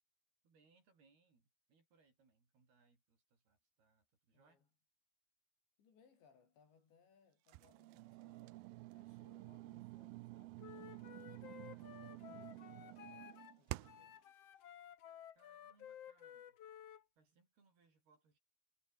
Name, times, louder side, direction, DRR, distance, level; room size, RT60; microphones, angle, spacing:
voice 1, 0.4-4.6 8.2-8.7 15.4-16.6 17.2-18.4, right 4 dB, 60° right, 9.3 m, -74 dB
voice 2, 4.3-4.7 5.8-13.1 13.6-14.2, left 6 dB, 85° left, 7.9 m, -71 dB
sound 1, 7.5-14.2, right 20 dB, 90° right, 2.1 m, -51 dB
Wind instrument woodwind instrument, 10.6-13.5 13.8-17.0, left 10 dB, 65° left, 1.5 m, -55 dB
omnidirectional pair, 5.0 m